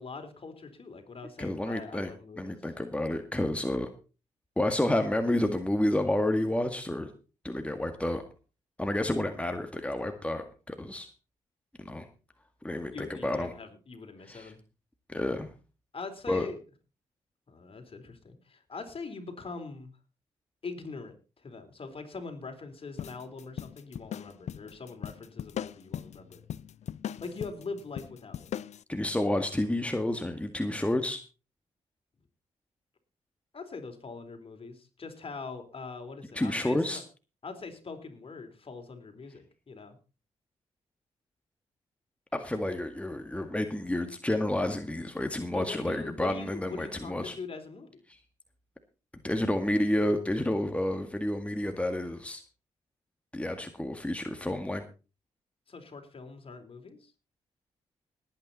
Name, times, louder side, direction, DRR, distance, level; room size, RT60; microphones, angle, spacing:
voice 1, 0.0-2.6 12.9-14.6 15.9-16.6 17.5-19.9 20.6-26.4 27.2-28.4 33.5-37.0 37.4-40.0 45.5-48.0 55.7-57.1, left 4 dB, 45° left, 6 dB, 4.0 m, -42 dB
voice 2, 1.4-3.9 4.6-7.1 7.4-8.2 8.8-11.1 11.8-12.1 12.6-13.5 14.3-14.5 15.1-15.5 16.3-16.5 28.9-31.2 36.3-37.0 42.3-47.4 48.1-48.2 49.2-52.4 53.3-54.8, left 1 dB, 10° left, 6 dB, 1.9 m, -30 dB
sound 1, 23.0-28.8, left 9 dB, 65° left, 0.5 m, -39 dB
19.0 x 9.0 x 4.2 m, 0.33 s
supercardioid pair, 50°, 13 cm